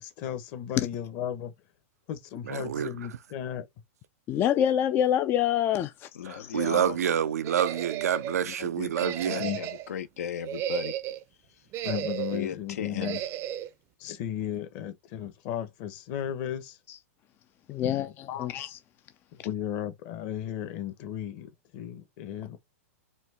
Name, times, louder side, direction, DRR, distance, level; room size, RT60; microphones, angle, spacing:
voice 1, 0.0-1.5 2.1-3.6 9.4-9.6 11.8-13.2 14.0-16.8 17.8-18.5 19.3-22.6, left 10 dB, 45° left, 1.0 m, -35 dB
voice 2, 2.4-3.2 6.2-9.4, right 9 dB, 85° right, 0.5 m, -28 dB
voice 3, 4.3-6.1 6.4-6.5 17.7-18.8, left 10 dB, 25° left, 0.4 m, -26 dB
voice 4, 6.1-7.0 8.4-10.9 11.5-11.6 12.3-13.2, left 9 dB, 75° left, 0.7 m, -36 dB
sound 1, 7.4-8.4 8.9-9.9 10.4-11.2 11.7-12.5 13.0-13.7, right 12 dB, 35° right, 0.6 m, -34 dB
4.3 x 2.3 x 4.1 m
hypercardioid pair, 130°, 8 cm